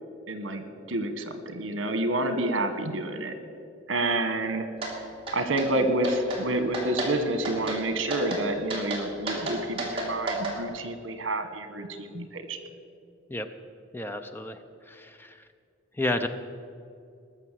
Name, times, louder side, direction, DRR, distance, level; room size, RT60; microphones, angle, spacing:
voice 1, 0.3-3.3 3.9-4.7 5.3-12.6, right 1 dB, 75° right, 9 dB, 1.5 m, -28 dB
sound 1, 4.8-4.9 5.3-5.7 6.0-6.4 6.7-7.1 7.4-7.8 8.1-8.4 8.7-10.6, right 2 dB, 30° right, 2.8 m, -32 dB
voice 2, 13.9-14.6 14.9-15.3 16.0-16.3, left 2 dB, 10° left, 8 dB, 0.6 m, -31 dB
20.0 x 6.8 x 7.5 m, 2.3 s
head